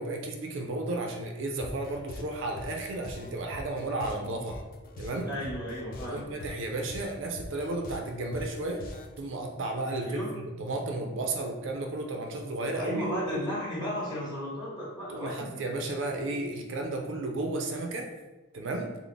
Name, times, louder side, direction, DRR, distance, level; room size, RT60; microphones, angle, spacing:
voice 1, 0.0-4.6 5.0-5.3 6.1-13.0 13.3-13.5 15.1-18.1 18.5-19.0, right 2 dB, 60° right, 2 dB, 0.4 m, -33 dB
sound 1, 1.6-9.2, left 1 dB, 45° left, 0.3 m, -43 dB
voice 2, 5.2-6.3 10.0-10.3 12.7-15.6, equal, 20° left, -8 dB, 1.2 m, -35 dB
3.9 x 2.0 x 3.3 m, 1.1 s
head